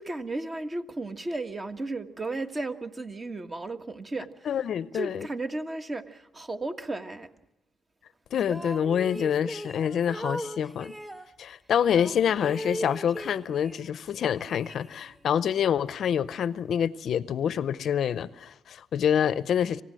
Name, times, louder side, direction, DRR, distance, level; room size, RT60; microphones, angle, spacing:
voice 1, 0.0-4.5 4.9-7.3, right 2 dB, 25° right, 1.6 m, -34 dB
voice 2, 4.5-5.3 8.3-10.9 11.4-19.8, left 8 dB, 65° left, 0.7 m, -27 dB
'Don't leave me alone here', 8.4-11.3 11.9-13.9 14.2-15.3, equal, 10° right, 1.6 m, -38 dB
26.5 x 16.5 x 7.6 m
cardioid pair, 90°, 0 cm